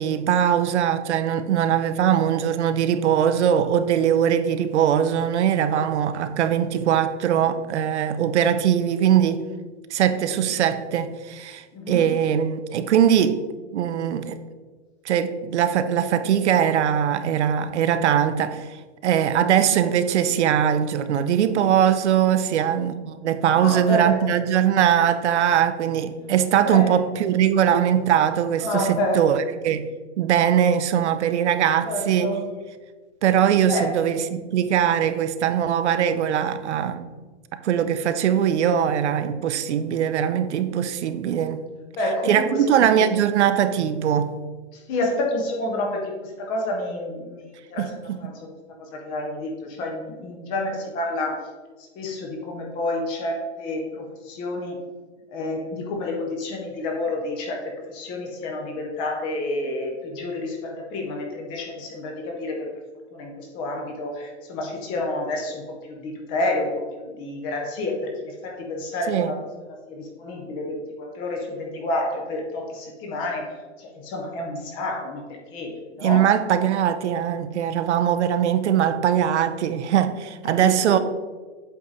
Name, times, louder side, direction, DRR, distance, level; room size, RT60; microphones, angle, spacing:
voice 1, 0.0-9.4 9.9-13.4 13.7-14.4 15.0-32.3 33.2-37.1 37.5-41.6 42.3-44.4 47.8-48.2 69.1-69.3 76.0-81.0, right 9 dB, 75° right, 0.6 m, -21 dB
voice 2, 11.7-12.1 23.5-24.3 26.6-27.0 28.6-29.2 31.8-32.5 33.7-33.9 41.9-43.1 44.7-47.8 48.2-48.5 48.8-51.5 52.0-54.8 55.3-62.7 63.1-69.4 69.9-73.5 73.8-76.3 80.4-81.0, left 1 dB, 15° left, 0.4 m, -29 dB
8.0 x 3.6 x 4.0 m
hypercardioid pair, 160°, 35 cm